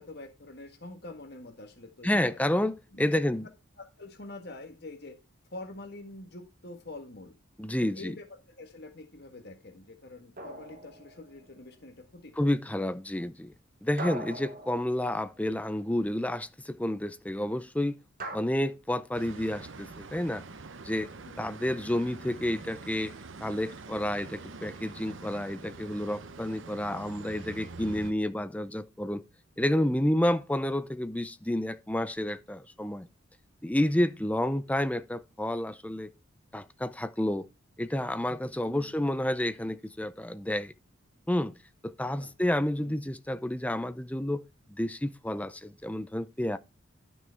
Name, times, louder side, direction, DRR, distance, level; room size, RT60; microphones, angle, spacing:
voice 1, 0.0-2.4 2.9-3.2 3.8-5.2 5.5-7.4 7.8-12.5 21.2-21.5 38.6-38.9 42.1-42.3 42.8-43.0, left 2 dB, 50° left, 1.7 m, -46 dB
voice 2, 2.0-3.4 7.6-8.1 12.4-13.5 13.8-18.0 18.3-20.4 20.8-21.1 21.4-23.1 23.4-29.2 29.6-33.1 33.6-36.1 36.5-37.5 37.8-40.7 41.3-41.5 41.8-44.4 44.7-46.6, left 1 dB, 5° left, 0.5 m, -30 dB
sound 1, 10.4-11.6 14.0-15.7 18.2-18.4, right 2 dB, 45° right, 1.4 m, -41 dB
sound 2, 19.1-28.1, right 3 dB, 65° right, 0.8 m, -45 dB
12.0 x 6.2 x 4.5 m
head